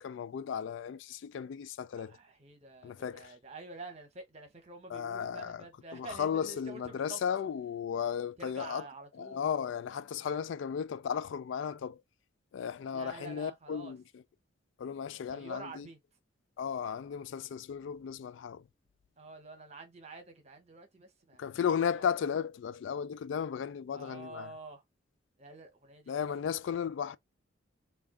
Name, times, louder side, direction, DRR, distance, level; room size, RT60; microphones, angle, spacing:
voice 1, 0.0-2.2 2.8-3.3 4.9-5.6 5.9-8.8 9.2-12.0 12.5-14.2 14.8-15.9 16.6-18.7 21.4-24.5 26.1-27.2, left 7 dB, 70° left, 0.3 m, -35 dB
voice 2, 2.0-7.2 8.4-9.5 12.9-14.0 15.3-16.0 19.2-21.6 21.9-22.0 23.9-24.8 25.4-26.3, right 3 dB, 35° right, 0.9 m, -48 dB
3.4 x 2.3 x 3.6 m
head